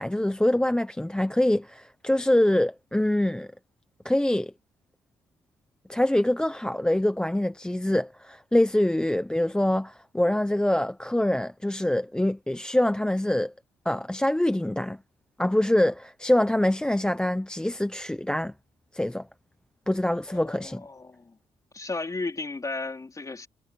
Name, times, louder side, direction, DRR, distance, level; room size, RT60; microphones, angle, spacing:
voice 1, 0.0-3.5 4.0-4.5 5.9-13.5 13.8-15.0 15.4-18.5 18.9-19.3 19.9-20.8, left 1 dB, 5° left, 0.9 m, -24 dB
voice 2, 20.3-21.4 21.7-23.5, left 3 dB, 25° left, 4.0 m, -34 dB
cardioid pair, 115°, 14 cm